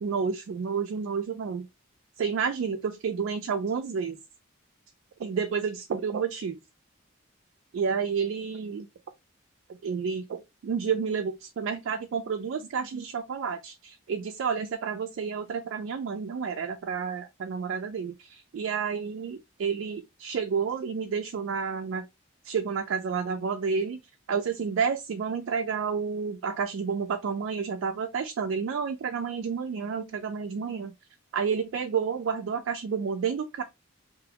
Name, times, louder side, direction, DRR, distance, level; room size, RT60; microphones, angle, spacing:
voice 1, 0.0-1.7 2.2-4.2 5.2-6.6 7.7-8.9 9.8-22.0 22.4-24.0 24.3-30.9 31.3-33.6, right 6 dB, 65° right, 0.3 m, -30 dB
2.5 x 2.0 x 2.8 m
head